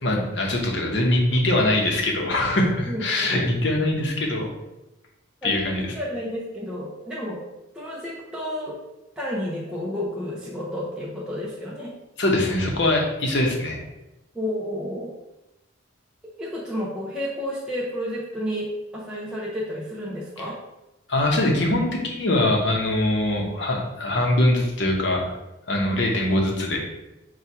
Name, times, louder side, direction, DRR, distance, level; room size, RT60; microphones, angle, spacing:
voice 1, 0.0-4.5 5.4-5.9 12.2-13.8 21.1-25.4 25.7-26.8, left 1 dB, 60° left, 0 dB, 0.8 m, -22 dB
voice 2, 2.9-3.3 5.4-7.4 7.7-8.8 9.2-11.9 14.3-15.1 16.4-18.7 18.9-20.6, equal, 5° right, -7 dB, 0.5 m, -31 dB
4.3 x 2.3 x 4.6 m, 0.96 s
head